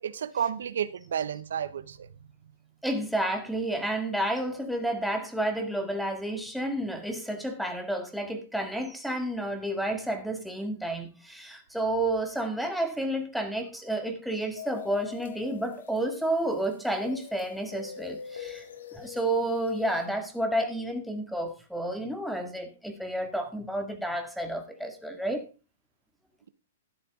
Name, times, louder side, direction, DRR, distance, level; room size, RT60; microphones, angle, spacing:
voice 1, 0.0-2.1, right 8 dB, 80° right, 0.8 m, -31 dB
voice 2, 2.8-18.6 18.9-25.5, right 1 dB, ahead, 1.9 m, -30 dB
sound 1, 14.6-20.1, left 8 dB, 80° left, 2.0 m, -44 dB
12.5 x 10.5 x 3.7 m
hypercardioid pair, 140°, 0 cm